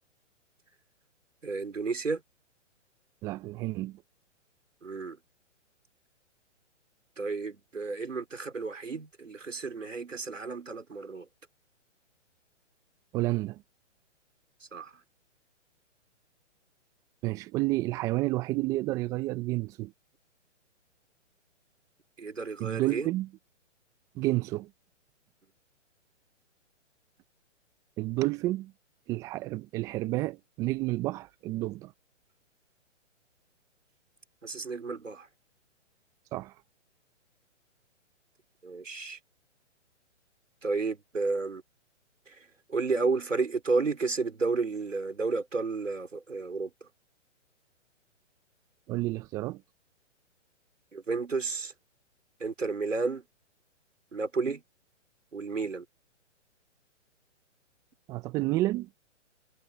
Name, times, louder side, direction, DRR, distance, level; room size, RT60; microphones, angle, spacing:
voice 1, 1.4-2.2 4.8-5.2 7.2-11.3 14.7-14.9 22.2-23.1 34.4-35.3 38.6-39.2 40.6-41.6 42.3-46.9 50.9-51.7 52.4-53.2 54.1-54.6 55.3-55.9, right 4 dB, 90° right, 3.8 m, -32 dB
voice 2, 3.2-4.0 13.1-13.6 17.2-19.9 22.6-23.3 24.2-24.7 28.0-28.7 29.1-31.9 36.3-36.5 48.9-49.6 58.1-58.9, right 18 dB, 10° right, 0.5 m, -30 dB
figure-of-eight pair, 130°, 37 cm